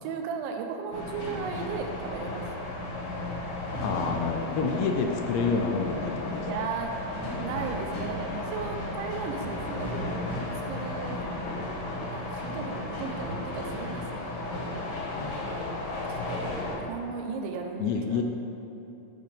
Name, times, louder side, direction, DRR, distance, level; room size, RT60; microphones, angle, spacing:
voice 1, 0.0-2.5 6.5-6.9 7.4-10.0 10.7-11.3 12.1-14.6 15.7-18.2, right 6 dB, 80° right, 3 dB, 2.9 m, -36 dB
sound 1, 0.9-16.8, left 2 dB, 65° left, 2.1 m, -34 dB
voice 2, 3.8-6.7 15.1-15.4 17.8-18.2, left 5 dB, 80° left, 3 dB, 2.8 m, -28 dB
13.5 x 5.8 x 3.4 m, 3.0 s
omnidirectional pair, 5.4 m